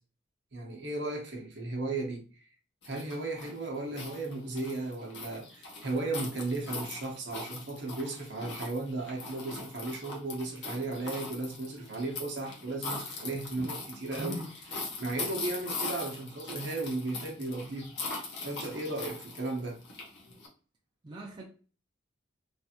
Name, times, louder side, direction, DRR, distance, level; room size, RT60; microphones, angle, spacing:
voice 1, 0.5-2.3 2.8-14.4 15.0-17.9 18.4-19.8, right 2 dB, 60° right, 0.8 m, -35 dB
sound 1, 2.8-20.5, left 3 dB, 60° left, 0.9 m, -41 dB
voice 2, 14.2-14.5 21.0-21.4, right 1 dB, 25° right, 0.4 m, -39 dB
3.3 x 2.5 x 2.7 m
head